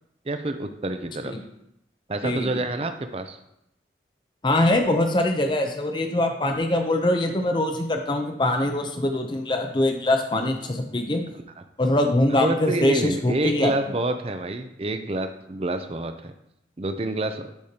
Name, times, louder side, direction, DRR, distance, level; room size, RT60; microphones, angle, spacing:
voice 1, 0.3-1.4 2.1-3.4 12.3-16.3 16.8-17.5, right 2 dB, 35° right, 8 dB, 0.5 m, -28 dB
voice 2, 4.4-11.2 11.8-13.7, left 1 dB, 25° left, 4 dB, 0.6 m, -23 dB
10.5 x 5.0 x 2.9 m, 0.81 s
head